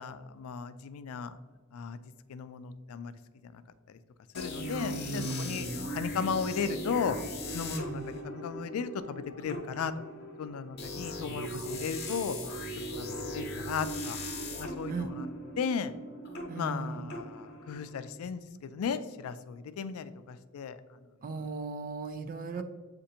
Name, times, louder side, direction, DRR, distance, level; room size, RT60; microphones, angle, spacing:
voice 1, 0.0-1.4 1.7-2.0 2.3-3.1 3.4-3.6 3.9-4.0 4.3-5.7 5.9-7.2 7.5-9.9 10.4-12.4 13.0-14.2 14.6-15.3 15.6-15.9 16.5-20.8 22.6-22.7, left 6 dB, 85° left, 13 dB, 0.3 m, -35 dB
sound 1, 4.3-18.1, equal, 50° left, 0.8 m, -39 dB
voice 2, 4.6-5.9 7.7-8.0 14.9-15.1 16.5-17.1 21.2-22.6, right 3 dB, 40° right, 10 dB, 0.4 m, -37 dB
7.6 x 2.5 x 2.8 m, 1.4 s
head